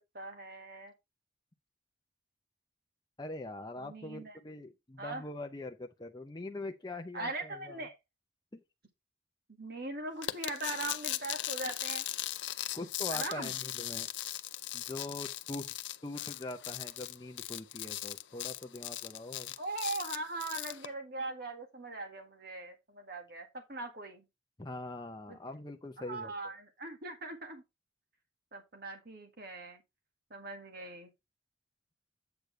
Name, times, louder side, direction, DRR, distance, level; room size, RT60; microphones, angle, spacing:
voice 1, 0.1-0.9 3.8-4.4 5.0-5.3 7.1-8.0 9.5-12.1 13.1-13.5 19.6-24.3 25.3-25.4 26.0-27.6 28.5-29.8 30.3-31.1, right 2 dB, 50° right, 1.8 m, -40 dB
voice 2, 3.2-7.9 8.5-8.6 12.7-14.1 14.7-15.7 16.0-19.5 24.6-26.3, left 2 dB, 20° left, 0.6 m, -43 dB
sound 1, 10.2-20.9, left 14 dB, 70° left, 0.5 m, -38 dB
8.1 x 6.6 x 3.2 m
head